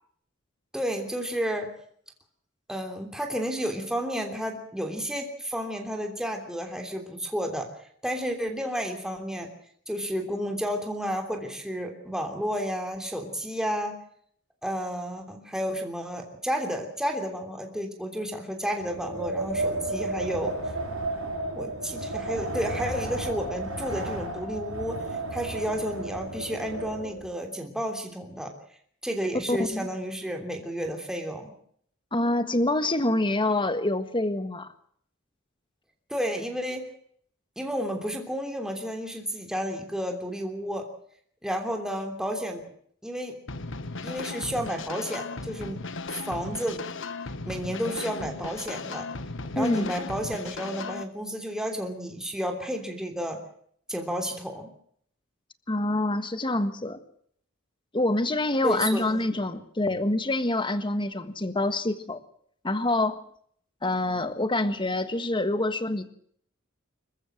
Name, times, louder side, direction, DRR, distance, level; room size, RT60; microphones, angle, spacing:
voice 1, 0.7-1.7 2.7-7.7 8.0-9.5 9.9-14.0 14.6-20.6 21.5-25.0 25.3-28.5 29.0-31.5 36.1-36.9 37.6-40.9 41.4-42.6 43.0-43.4 44.0-45.8 46.1-46.8 47.4-49.1 49.5-53.4 53.9-54.7 58.6-59.2, equal, 5° right, 3 dB, 3.1 m, -31 dB
Wind, 18.8-27.3, right 2 dB, 80° right, 7.5 m, -33 dB
voice 2, 29.5-29.9 32.1-34.7 49.5-49.9 55.7-57.0 57.9-62.2 62.6-63.2 63.8-66.1, left 2 dB, 25° left, 11 dB, 1.6 m, -26 dB
sound 1, 43.5-51.0, left 3 dB, 65° left, 1.5 m, -36 dB
26.5 x 15.0 x 7.6 m, 0.64 s
head